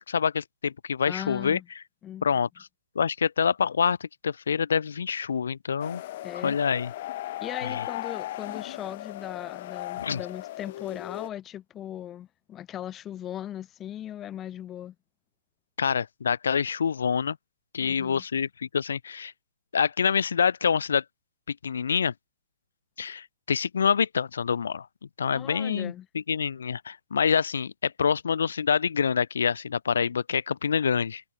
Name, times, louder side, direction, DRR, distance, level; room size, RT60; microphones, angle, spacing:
voice 1, 0.0-1.6 2.2-2.5 2.9-6.0 6.4-6.9 7.6-7.8 10.0-10.2 15.8-17.4 17.7-19.3 19.7-21.0 21.5-22.1 23.0-24.9 25.2-31.2, left 6 dB, 85° left, 0.9 m, -26 dB
voice 2, 1.0-1.6 2.0-2.3 6.2-6.6 7.4-14.9 17.8-18.2 25.3-26.1, left 11 dB, 15° left, 1.3 m, -38 dB
sound 1, 5.8-11.3, left 15 dB, 45° left, 6.9 m, -37 dB
hypercardioid pair, 155°, 0 cm